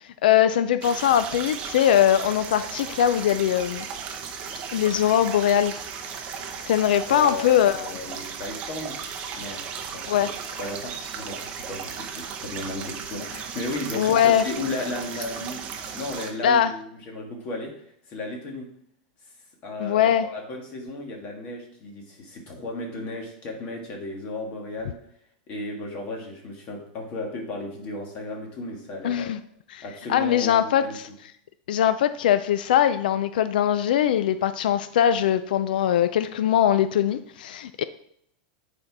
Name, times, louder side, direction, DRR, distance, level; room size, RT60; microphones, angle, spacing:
voice 1, 0.2-3.8 4.7-5.8 6.7-7.9 10.1-10.3 13.9-14.4 16.4-16.7 19.8-20.3 29.0-29.4 29.7-29.8 30.1-31.1 31.7-37.8, left 10 dB, 85° left, 0.4 m, -21 dB
sound 1, 0.8-16.3, right 6 dB, 25° right, 0.7 m, -36 dB
voice 2, 7.1-9.0 9.3-9.6 9.9-10.3 10.6-15.6 15.9-17.7 18.1-18.7 19.6-25.0 25.5-29.3 29.8-31.0, left 2 dB, 30° left, 1.6 m, -34 dB
8.8 x 4.4 x 4.6 m
supercardioid pair, 180°, 5 cm